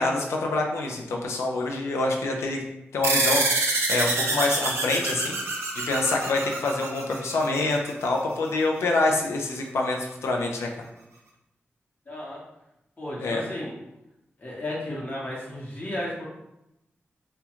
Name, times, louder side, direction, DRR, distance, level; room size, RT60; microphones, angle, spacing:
voice 1, 0.0-2.6 2.9-10.7 13.2-13.4, left 2 dB, 90° left, 1 dB, 0.4 m, -26 dB
sound 1, 3.0-7.9, right 2 dB, 90° right, 0.4 m, -26 dB
voice 2, 12.1-12.4 13.0-13.7 14.4-16.3, left 1 dB, 45° left, -5 dB, 0.9 m, -33 dB
2.4 x 2.1 x 2.9 m, 0.89 s
cardioid pair, 50°, 4 cm